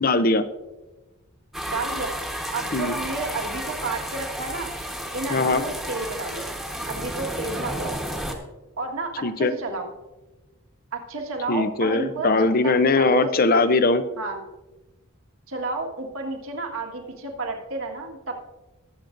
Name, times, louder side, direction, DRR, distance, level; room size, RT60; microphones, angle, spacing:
voice 1, 0.0-0.5 2.7-2.9 5.3-5.6 9.2-9.5 11.5-14.0, left 3 dB, 40° left, 12 dB, 0.6 m, -20 dB
sound 1, 1.5-8.3, equal, ahead, 1.2 m, -32 dB
voice 2, 1.7-2.1 2.5-4.7 5.1-6.5 6.9-7.9 8.8-9.9 10.9-13.3 14.2-14.4 15.5-18.4, right 3 dB, 70° right, 2 dB, 1.6 m, -31 dB
20.0 x 7.8 x 2.6 m, 1.1 s
head